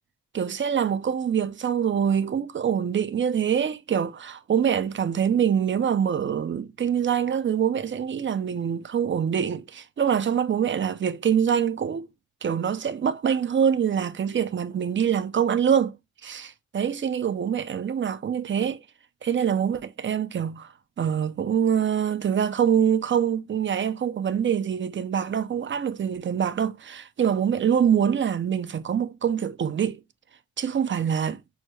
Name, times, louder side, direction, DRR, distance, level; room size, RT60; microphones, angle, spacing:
voice 1, 0.3-12.1 12.4-16.0 16.2-18.8 19.2-20.7 21.0-30.0 30.6-31.4, right 8 dB, 40° right, 0.4 m, -25 dB
6.2 x 2.1 x 3.1 m
wide cardioid pair, 105°, 31 cm